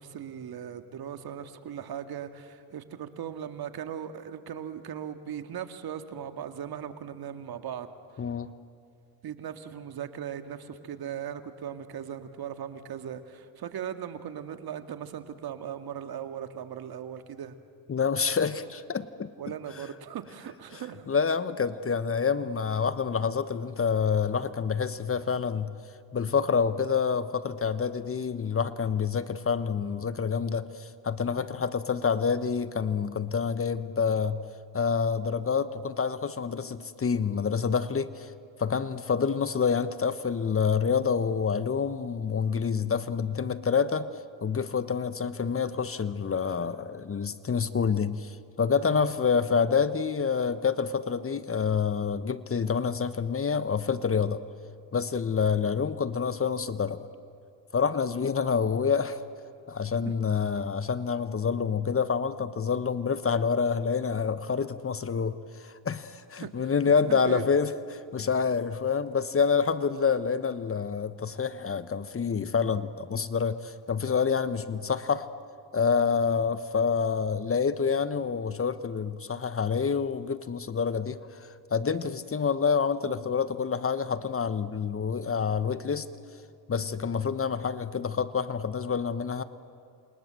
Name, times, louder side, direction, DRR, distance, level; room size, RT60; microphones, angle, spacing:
voice 1, 0.0-7.9 9.2-17.6 19.4-21.1 48.9-49.2 60.1-60.2 66.4-66.5 66.8-67.4, right 9 dB, 55° right, 8 dB, 2.1 m, -38 dB
voice 2, 8.2-8.5 17.9-19.3 20.7-25.7 26.1-34.4 34.7-38.3 38.6-44.1 44.4-54.4 54.9-57.0 57.7-59.2 59.7-75.3 75.7-86.1 86.7-89.4, left 6 dB, 30° left, 13 dB, 1.2 m, -27 dB
28.5 x 27.0 x 7.7 m, 2.4 s
supercardioid pair, 75°, 44 cm